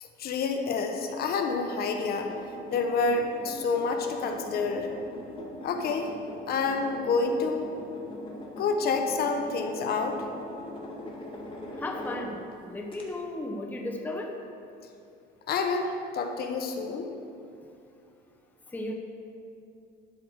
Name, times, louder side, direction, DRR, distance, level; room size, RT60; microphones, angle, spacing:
voice 1, 0.0-2.3 2.7-4.9 5.6-6.1 6.5-7.7 8.6-10.2 15.5-17.1, left 4 dB, 50° left, 4 dB, 1.0 m, -28 dB
sound 1, 2.0-12.5 12.9-13.0, left 1 dB, 25° left, 1.8 m, -41 dB
voice 2, 11.8-14.3 18.7-18.9, left 1 dB, 10° left, 1 dB, 0.8 m, -35 dB
12.0 x 4.8 x 6.3 m, 2.6 s
cardioid pair, 130°, 21 cm